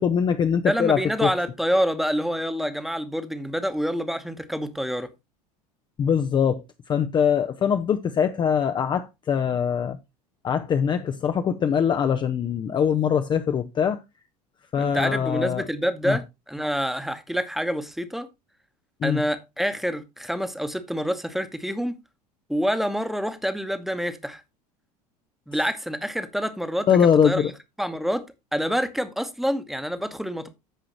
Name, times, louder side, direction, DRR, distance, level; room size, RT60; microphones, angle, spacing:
voice 1, 0.0-1.3 6.0-6.6 6.9-10.0 10.4-14.0 14.7-15.6 16.0-16.2 19.0-19.2 26.9-27.5, left 7 dB, 20° left, 0.5 m, -22 dB
voice 2, 0.6-5.1 14.7-18.3 19.0-21.9 22.5-24.4 25.5-26.9 27.2-27.4 27.8-28.2 28.5-30.5, equal, ahead, 1.0 m, -27 dB
14.5 x 4.9 x 2.9 m
figure-of-eight pair, 75°, 21 cm